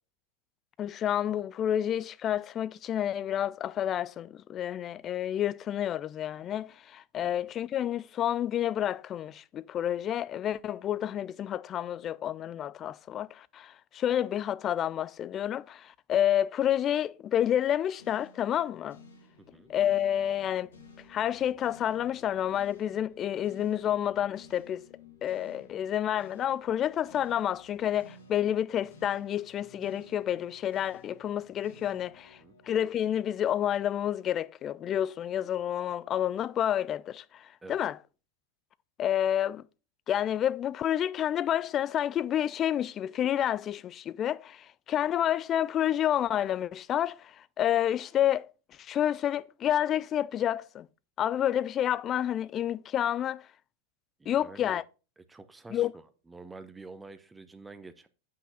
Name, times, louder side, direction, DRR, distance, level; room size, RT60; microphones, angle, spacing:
voice 1, 0.8-19.0 19.7-20.7 21.1-24.8 25.2-32.4 32.7-38.0 39.0-39.6 40.1-48.5 48.8-50.9 51.2-53.4 54.3-54.8 55.7-55.9, left 10 dB, 30° left, 0.4 m, -29 dB
sound 1, 18.0-34.3, left 3 dB, 65° left, 1.7 m, -55 dB
voice 2, 19.4-19.7 32.4-32.6 37.6-37.8 54.2-54.8 55.2-58.1, right 3 dB, 10° right, 0.8 m, -48 dB
8.3 x 5.7 x 4.1 m
figure-of-eight pair, 90°, 0 cm